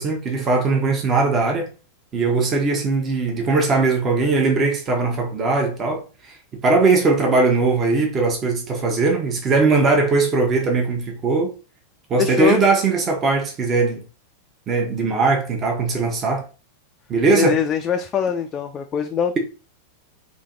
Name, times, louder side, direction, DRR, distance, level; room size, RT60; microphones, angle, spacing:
voice 1, 0.0-1.7 2.1-6.4 6.6-11.5 12.1-14.0 14.7-16.4 17.1-17.6, right 3 dB, 25° right, 1.0 m, -20 dB
voice 2, 12.2-12.6 17.3-19.4, left 8 dB, 25° left, 0.4 m, -22 dB
4.1 x 2.9 x 3.8 m
figure-of-eight pair, 90°, 0 cm